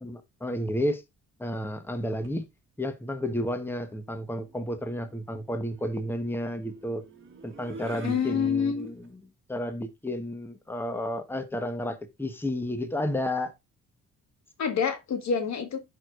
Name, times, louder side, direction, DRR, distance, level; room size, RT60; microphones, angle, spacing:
voice 1, 0.0-1.0 1.4-2.5 2.8-7.0 7.4-9.2 9.5-13.5, left 1 dB, 5° left, 1.2 m, -31 dB
sound 1, 2.2-2.4 3.8-9.1, right 4 dB, 40° right, 1.4 m, -47 dB
voice 2, 8.0-8.9 14.6-15.8, left 6 dB, 65° left, 1.6 m, -27 dB
11.5 x 4.8 x 2.5 m
cardioid pair, 90°, 30 cm